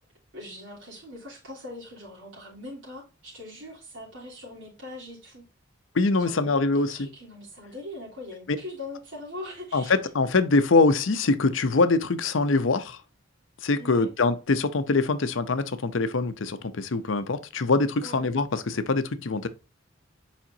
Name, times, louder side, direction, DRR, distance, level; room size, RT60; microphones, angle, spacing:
voice 1, 0.3-5.4 6.2-10.0 13.8-14.1 18.0-18.2, left 1 dB, 75° right, 3.3 m, -41 dB
voice 2, 5.9-7.1 9.7-13.0 13.6-19.5, left 3 dB, 75° left, 0.7 m, -23 dB
7.3 x 5.0 x 2.7 m
head